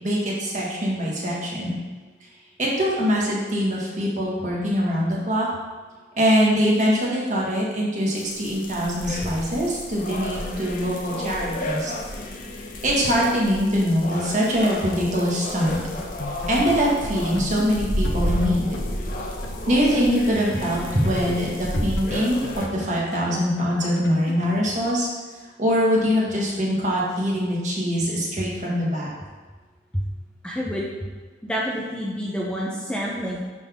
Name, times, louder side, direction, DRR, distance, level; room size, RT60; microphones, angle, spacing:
voice 1, 0.0-1.8 2.6-5.5 6.2-11.9 12.8-15.8 16.4-18.8 19.7-25.1 25.6-29.1, equal, 40° right, -4 dB, 1.7 m, -23 dB
sound 1, 8.1-22.7, left 1 dB, 45° left, 0.9 m, -31 dB
sound 2, 16.2-19.6 19.9-20.0 20.4-24.6, left 2 dB, 80° left, 0.8 m, -38 dB
voice 2, 30.4-30.8 31.4-33.4, equal, 5° left, -5 dB, 0.8 m, -28 dB
10.5 x 4.2 x 3.7 m, 1.4 s
head